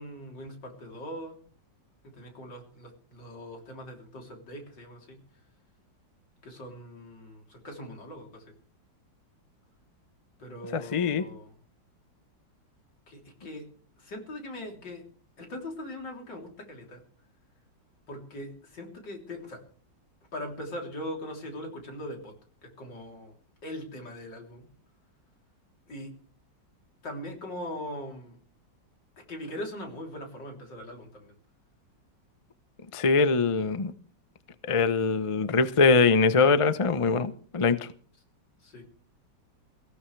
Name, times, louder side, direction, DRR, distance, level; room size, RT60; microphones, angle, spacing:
voice 1, 0.0-1.4 2.1-5.2 6.4-8.4 10.4-11.5 13.1-13.6 14.0-15.0 15.4-17.0 18.1-19.6 20.3-22.3 22.8-23.3 23.6-24.7 25.9-26.1 27.0-28.4 29.3-31.3 38.6-38.8, left 1 dB, 70° left, 4.1 m, -40 dB
voice 2, 10.7-11.2 32.9-33.9 34.7-37.9, left 4 dB, 40° left, 0.4 m, -23 dB
23.0 x 16.0 x 3.3 m
omnidirectional pair, 2.0 m